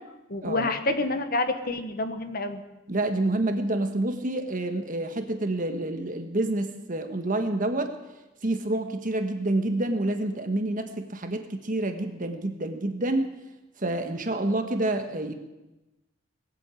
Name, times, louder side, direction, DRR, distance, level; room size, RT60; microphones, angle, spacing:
voice 1, 0.3-2.6, left 2 dB, 50° left, 8 dB, 1.3 m, -28 dB
voice 2, 2.9-7.9 8.4-13.3 13.8-15.3, right 2 dB, 45° right, 6 dB, 1.4 m, -28 dB
19.5 x 8.3 x 8.4 m, 1.0 s
head